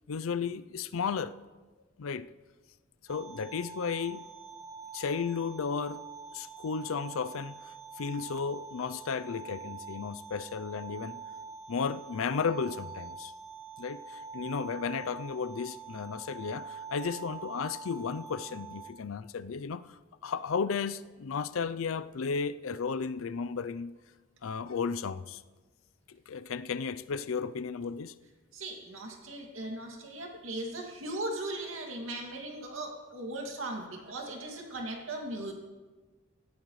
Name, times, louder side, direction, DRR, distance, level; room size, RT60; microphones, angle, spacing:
voice 1, 0.1-1.4 2.0-2.3 3.1-4.3 4.9-6.0 6.3-7.5 8.0-11.2 11.7-13.3 13.8-24.0 24.4-25.4 26.1-28.1, left 5 dB, 85° left, 0.5 m, -34 dB
sound 1, 3.1-18.9, right 5 dB, 35° right, 1.1 m, -45 dB
voice 2, 28.5-35.5, right 1 dB, 85° right, 2.3 m, -38 dB
18.0 x 13.0 x 3.2 m
head